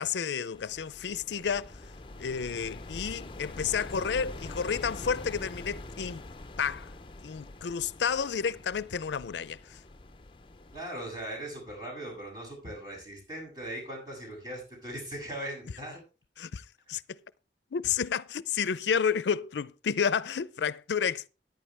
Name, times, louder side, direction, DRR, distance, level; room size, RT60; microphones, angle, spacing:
voice 1, 0.0-1.8 2.2-6.2 6.6-6.9 7.2-9.8 16.4-17.2 17.7-21.3, left 6 dB, 85° left, 0.5 m, -31 dB
sound 1, 0.5-10.8, left 2 dB, 30° left, 0.6 m, -44 dB
voice 2, 10.7-16.0, right 1 dB, 25° right, 6.9 m, -39 dB
14.0 x 10.5 x 3.3 m
head